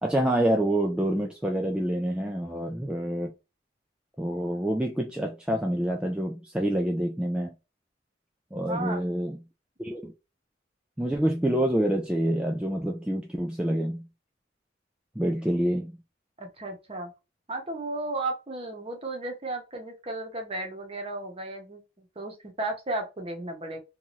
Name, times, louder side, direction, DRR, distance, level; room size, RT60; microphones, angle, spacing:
voice 1, 0.0-3.3 4.2-7.5 8.5-9.4 9.8-10.1 11.0-14.0 15.2-15.9, right 1 dB, 5° right, 0.3 m, -27 dB
voice 2, 8.5-9.0 16.4-17.1 17.5-23.8, right 2 dB, 35° right, 0.8 m, -34 dB
2.6 x 2.3 x 3.0 m
head